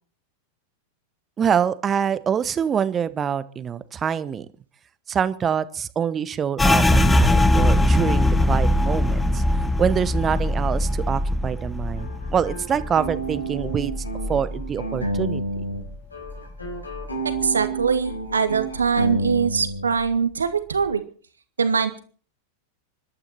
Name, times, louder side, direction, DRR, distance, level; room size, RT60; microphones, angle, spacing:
voice 1, 1.4-4.5 5.1-13.9 14.3-15.4, right 7 dB, 25° right, 16 dB, 1.0 m, -25 dB
sound 1, 6.6-16.0 16.3-17.5 17.8-18.3 18.8-19.4, left 1 dB, 10° left, 1.0 m, -22 dB
sound 2, 12.0-15.9 16.1-19.9, right 2 dB, 80° left, 3.9 m, -30 dB
voice 2, 17.2-21.0 21.6-22.0, right 6 dB, 75° right, 10 dB, 1.7 m, -22 dB
26.0 x 12.0 x 4.4 m, 0.42 s
figure-of-eight pair, 90°, 0 cm